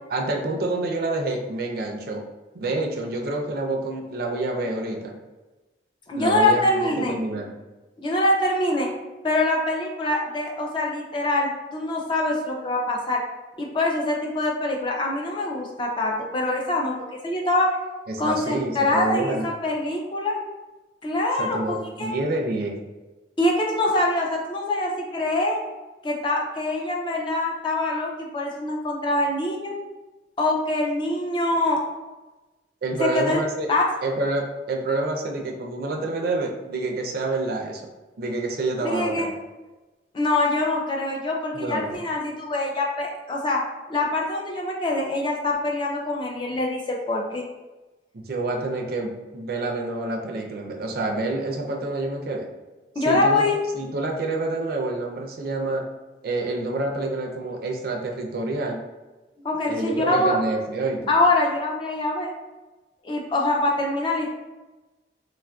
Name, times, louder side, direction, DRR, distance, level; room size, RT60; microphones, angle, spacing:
voice 1, 0.1-2.2 2.5-5.1 6.2-7.5 18.1-19.5 21.4-22.8 32.8-33.7 34.0-37.8 38.2-39.4 41.5-42.0 48.1-52.5 53.0-53.4 53.7-55.8 56.2-58.8 59.7-61.1, right 2 dB, 55° right, 1 dB, 0.4 m, -28 dB
voice 2, 6.1-7.2 8.0-8.9 9.2-13.2 13.6-16.9 17.2-17.8 18.2-20.4 21.0-22.1 23.4-25.6 26.0-29.7 30.4-31.8 33.0-33.4 33.7-33.8 38.8-39.3 40.1-43.6 43.9-47.4 53.0-53.6 59.4-60.4 61.1-62.3 63.0-64.3, left 2 dB, 25° left, 0 dB, 0.3 m, -24 dB
3.4 x 2.4 x 2.2 m, 1.1 s
head